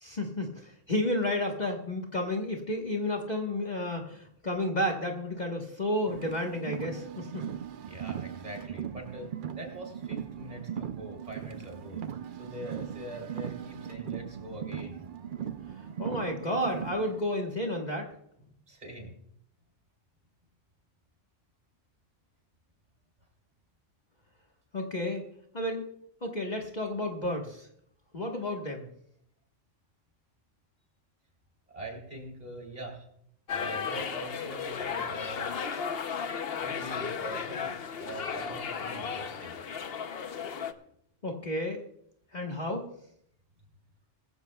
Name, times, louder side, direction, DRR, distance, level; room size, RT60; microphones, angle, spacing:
voice 1, 0.0-7.5 16.0-18.1 24.7-25.2 25.5-25.8 26.2-27.7 28.1-28.9 41.2-41.8 42.3-42.8, left 1 dB, 35° left, 0 dB, 1.5 m, -31 dB
Car, 6.1-17.2, right 9 dB, 55° right, 0.6 m, -39 dB
voice 2, 7.9-12.0 12.3-15.1 18.7-19.2 31.7-33.1 33.5-35.5 36.6-39.5, right 1 dB, 35° right, 0 dB, 3.4 m, -43 dB
sound 1, 33.5-40.7, left 6 dB, 55° left, 0.9 m, -35 dB
22.0 x 15.0 x 2.3 m, 0.70 s
omnidirectional pair, 1.3 m